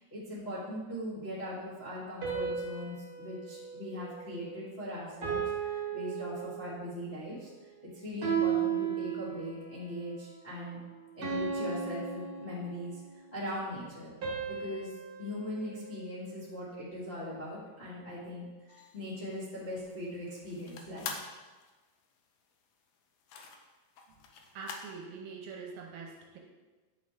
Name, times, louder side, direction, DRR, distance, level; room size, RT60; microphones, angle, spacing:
voice 1, 0.0-5.4 5.7-7.5 7.9-10.8 11.1-13.0 13.3-14.1 14.5-14.9 15.2-21.1, left 1 dB, 55° left, -10 dB, 0.7 m, -40 dB
sound 1, 2.2-4.7 5.2-7.0 8.2-9.7 11.2-13.1 14.2-16.6, right 7 dB, 40° right, 1.3 m, -36 dB
sound 2, 18.7-25.0, left 5 dB, 90° left, 1.7 m, -46 dB
voice 2, 24.5-26.4, right 5 dB, 75° right, 1 dB, 2.3 m, -44 dB
9.7 x 5.2 x 3.5 m, 1.3 s
omnidirectional pair, 4.5 m